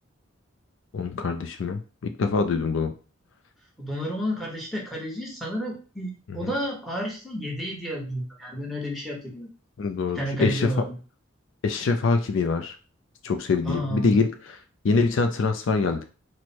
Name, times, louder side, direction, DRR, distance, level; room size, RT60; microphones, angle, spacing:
voice 1, 0.9-2.9 6.3-6.5 9.8-10.7 11.6-12.8 13.2-16.2, left 4 dB, 65° left, 7 dB, 0.4 m, -25 dB
voice 2, 3.8-9.5 10.1-11.0 13.6-14.2, equal, ahead, -1 dB, 1.1 m, -31 dB
4.6 x 2.1 x 4.3 m, 0.35 s
head